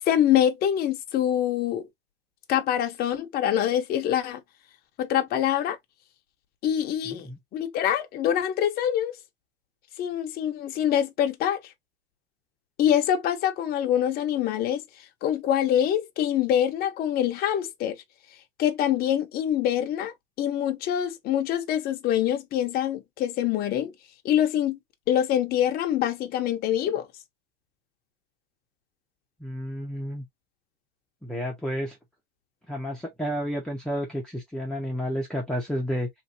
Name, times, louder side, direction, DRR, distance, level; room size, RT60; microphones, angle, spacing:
voice 1, 0.1-1.9 2.5-4.4 5.0-5.8 6.6-9.2 10.0-11.7 12.8-14.8 15.2-18.0 18.6-23.9 24.2-24.8 25.1-27.1, left 10 dB, 30° left, 0.8 m, -25 dB
voice 2, 7.1-7.4 29.4-30.2 31.2-32.0 32.7-36.1, equal, ahead, 0.8 m, -31 dB
3.1 x 2.8 x 2.8 m
supercardioid pair, 140°, 31 cm